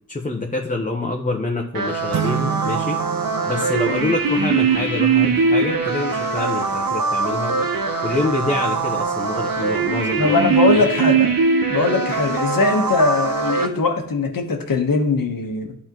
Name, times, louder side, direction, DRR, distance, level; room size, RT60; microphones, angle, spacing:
voice 1, 0.1-3.0 3.5-7.7 8.0-10.4 10.7-10.8, left 2 dB, 25° left, 1 dB, 0.9 m, -26 dB
sound 1, 1.7-13.7, right 5 dB, 85° right, 0.9 m, -21 dB
sound 2, 2.1-4.9, right 9 dB, 55° right, 0.5 m, -29 dB
voice 2, 10.2-11.3 11.7-15.7, left 3 dB, 80° left, 4 dB, 1.3 m, -20 dB
12.0 x 4.3 x 3.0 m, 0.73 s
wide cardioid pair, 70°, 34 cm